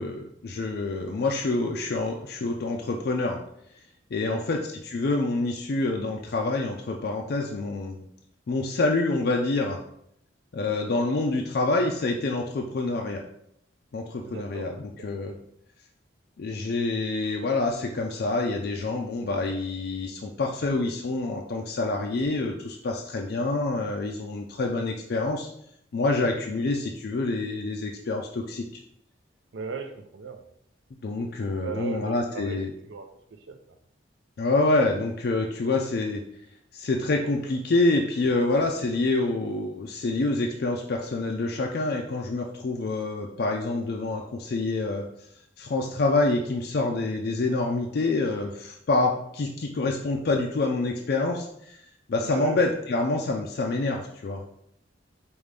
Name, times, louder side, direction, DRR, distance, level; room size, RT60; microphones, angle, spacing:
voice 1, 0.0-3.4 4.1-8.0 8.5-9.8 10.5-13.2 13.9-15.3 16.4-25.5 25.9-28.7 31.0-32.7 34.4-36.2 36.7-45.1 45.6-51.8 52.1-54.5, left 2 dB, 50° left, 1 dB, 0.4 m, -27 dB
voice 2, 4.2-4.6 14.2-14.7 15.0-15.2 29.5-30.4 31.6-32.6 32.9-33.1 33.5-33.6 52.2-52.6, right 4 dB, 70° right, 7 dB, 0.5 m, -37 dB
5.1 x 2.5 x 3.2 m, 0.71 s
head